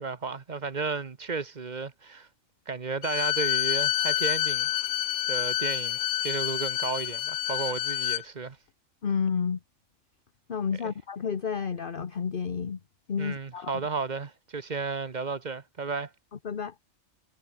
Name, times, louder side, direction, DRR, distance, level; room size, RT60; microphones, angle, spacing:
voice 1, 0.0-2.3 2.7-4.7 5.3-8.6 10.7-10.9 13.2-16.1, right 4 dB, 35° right, 1.0 m, -33 dB
Bowed string instrument, 3.0-8.2, left 13 dB, 70° left, 0.9 m, -28 dB
voice 2, 9.0-9.6 10.5-12.8 13.1-13.7 16.4-16.7, left 6 dB, 45° left, 1.2 m, -30 dB
omnidirectional pair, 1.4 m